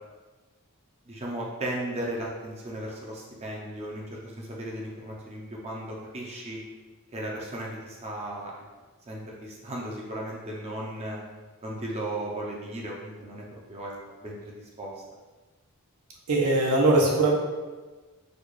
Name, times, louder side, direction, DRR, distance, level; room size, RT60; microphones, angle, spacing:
voice 1, 1.1-6.6 7.1-8.5 9.1-11.2 11.6-13.9 14.2-15.0, right 1 dB, 30° right, -2 dB, 0.5 m, -36 dB
voice 2, 16.3-17.3, right 2 dB, 75° right, -2 dB, 0.7 m, -21 dB
4.1 x 2.3 x 3.1 m, 1.3 s
head